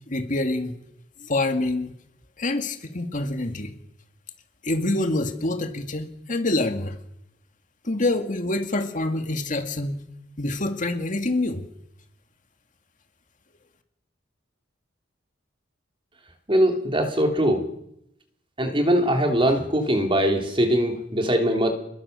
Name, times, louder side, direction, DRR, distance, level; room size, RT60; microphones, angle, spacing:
voice 1, 0.1-0.8 1.2-1.9 2.4-3.7 4.6-7.0 7.8-10.0 10.4-11.6, left 2 dB, 40° left, 6 dB, 2.2 m, -26 dB
voice 2, 16.5-17.6 18.6-21.7, equal, 25° right, 4 dB, 3.4 m, -21 dB
27.5 x 21.5 x 6.9 m, 0.79 s
head